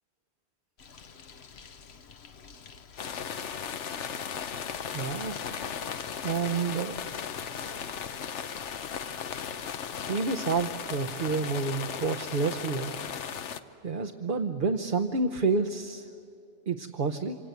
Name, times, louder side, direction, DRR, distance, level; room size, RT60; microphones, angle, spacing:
Bird, 0.8-10.1, left 6 dB, 65° left, 1.1 m, -51 dB
sound 1, 3.0-13.6, left 7 dB, 85° left, 1.2 m, -36 dB
voice 1, 4.9-5.4 6.2-7.0 10.1-13.0 13.8-16.1 16.7-17.4, right 4 dB, 50° right, 5 dB, 0.9 m, -29 dB
27.0 x 25.5 x 8.1 m, 2.5 s
omnidirectional pair, 1.2 m